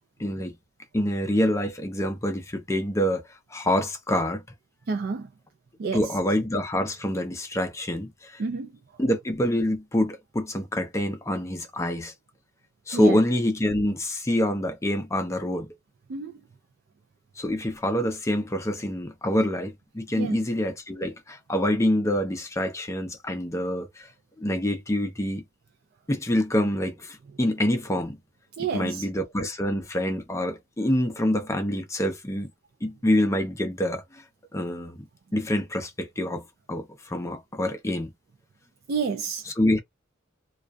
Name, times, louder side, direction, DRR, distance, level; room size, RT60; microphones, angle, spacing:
voice 1, 0.2-0.5 0.9-3.2 3.5-4.4 5.9-8.4 9.0-12.1 12.9-15.8 17.4-24.1 24.4-25.4 26.1-28.2 28.6-32.5 32.8-34.2 34.5-35.1 35.3-38.1 39.5-39.8, left 1 dB, 15° left, 0.5 m, -26 dB
voice 2, 4.9-5.3 5.8-6.1 8.4-8.7 12.9-13.2 16.1-16.3 20.2-20.4 28.6-29.1 38.9-39.5, right 4 dB, 50° right, 0.4 m, -29 dB
2.3 x 2.2 x 2.4 m
head